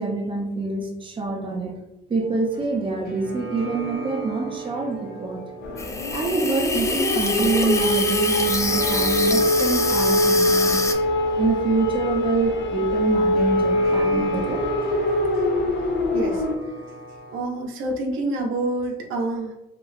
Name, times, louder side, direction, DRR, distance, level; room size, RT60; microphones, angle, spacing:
voice 1, 0.0-1.8 2.1-5.4 6.1-10.8 11.4-14.7, right 3 dB, 25° right, 0 dB, 0.6 m, -26 dB
sound 1, 2.2-17.4, right 2 dB, 50° left, 1.0 m, -36 dB
sound 2, 5.6-16.5, left 1 dB, 65° left, 0.5 m, -23 dB
Water tap faucet / Sink (filling or washing), 5.8-10.9, left 3 dB, 15° left, 0.3 m, -26 dB
voice 2, 16.1-16.4 17.3-19.5, right 2 dB, 90° right, 1 dB, 0.6 m, -27 dB
2.9 x 2.6 x 2.5 m, 0.98 s
cardioid pair, 90°, 20 cm